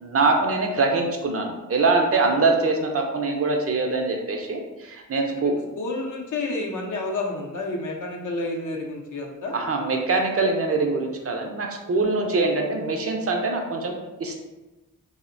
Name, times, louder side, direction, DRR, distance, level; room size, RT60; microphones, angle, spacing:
voice 1, 0.0-5.5 9.5-13.9 14.2-14.4, right 3 dB, 45° right, 2 dB, 0.5 m, -23 dB
voice 2, 5.8-9.6, left 2 dB, 65° left, 0 dB, 0.6 m, -30 dB
2.7 x 2.1 x 2.5 m, 1.1 s
cardioid pair, 40°, 33 cm